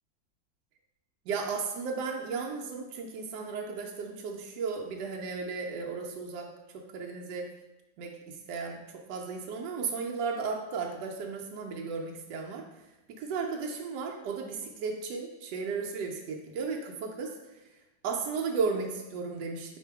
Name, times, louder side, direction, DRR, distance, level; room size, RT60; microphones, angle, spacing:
voice 1, 1.3-6.5 6.9-7.5 8.0-8.8 9.1-12.6 13.2-17.3 18.0-19.8, right 5 dB, 75° right, 0 dB, 1.2 m, -34 dB
4.3 x 2.7 x 4.5 m, 1.0 s
omnidirectional pair, 2.0 m